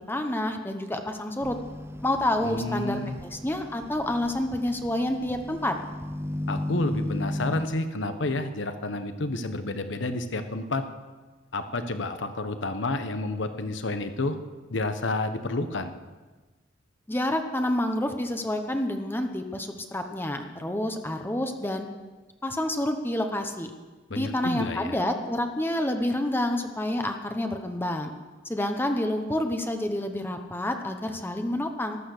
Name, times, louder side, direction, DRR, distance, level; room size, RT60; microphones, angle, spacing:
voice 1, 0.1-1.6 2.0-5.8 17.1-21.9 22.4-23.7 24.1-28.1 28.4-32.0, left 1 dB, 10° left, 5 dB, 1.0 m, -28 dB
sound 1, 1.4-7.7, left 1 dB, 15° right, 0.7 m, -35 dB
voice 2, 2.4-3.2 6.5-10.8 11.5-14.4 14.7-15.9 24.1-25.0, left 2 dB, 80° left, 9 dB, 1.1 m, -30 dB
14.0 x 12.0 x 6.6 m, 1.3 s
head